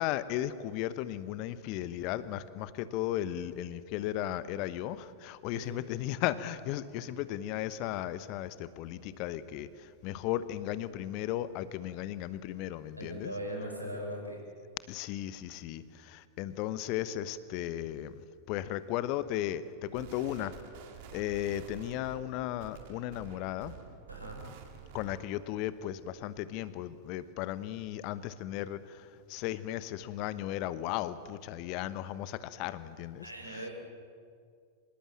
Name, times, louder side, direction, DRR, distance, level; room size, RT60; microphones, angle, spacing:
voice 1, 0.0-9.7 10.0-13.3 14.9-18.1 18.5-20.5 21.1-23.7 24.9-29.0 29.3-33.3, left 13 dB, 45° left, 15 dB, 1.0 m, -35 dB
voice 2, 13.0-14.4 24.1-24.4 33.2-33.7, equal, 90° right, 1 dB, 5.0 m, -40 dB
sound 1, 19.9-25.4, right 7 dB, 50° right, 2.5 m, -49 dB
25.0 x 20.5 x 7.5 m, 2.2 s
figure-of-eight pair, 90°, 0 cm